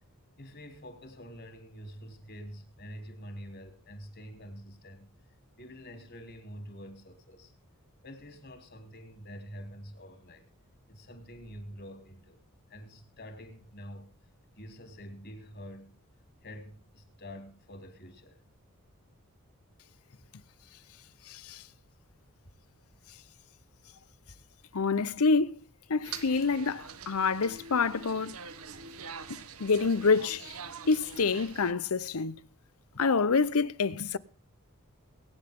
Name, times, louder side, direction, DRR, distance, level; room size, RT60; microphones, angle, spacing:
voice 1, 0.4-5.1 5.6-7.5 8.0-10.5 10.9-12.4 12.7-14.1 14.6-16.0 16.4-18.4, equal, 50° left, 3.5 m, -46 dB
voice 2, 21.3-21.6 24.7-25.6 25.9-28.4 29.6-30.6 30.9-32.4 33.0-34.2, left 4 dB, 75° left, 0.7 m, -27 dB
sound 1, 26.0-31.7, right 6 dB, 75° right, 1.3 m, -44 dB
22.5 x 9.7 x 3.7 m
head